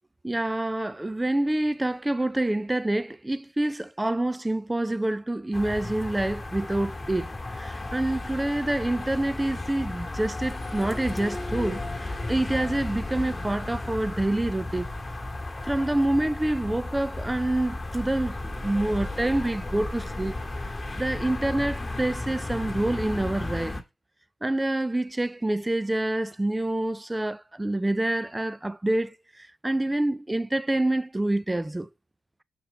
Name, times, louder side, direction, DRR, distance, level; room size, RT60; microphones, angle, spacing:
voice 1, 0.2-7.3 7.5-14.9 15.6-20.4 21.0-23.8 24.4-29.1 29.6-31.9, right 1 dB, 10° right, 0.5 m, -27 dB
sound 1, 5.5-23.8, left 2 dB, 15° left, 1.8 m, -34 dB
6.9 x 5.8 x 3.8 m
cardioid pair, 80°, 0 cm